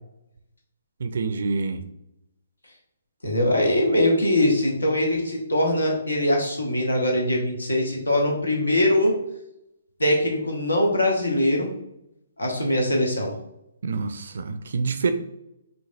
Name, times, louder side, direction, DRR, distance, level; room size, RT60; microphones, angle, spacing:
voice 1, 1.0-1.8 13.8-15.1, right 4 dB, 55° right, 10 dB, 0.4 m, -27 dB
voice 2, 3.2-9.1 10.0-11.7 12.4-13.3, left 1 dB, 75° left, 0 dB, 1.1 m, -22 dB
5.1 x 2.8 x 2.4 m, 0.83 s
figure-of-eight pair, 130°, 0 cm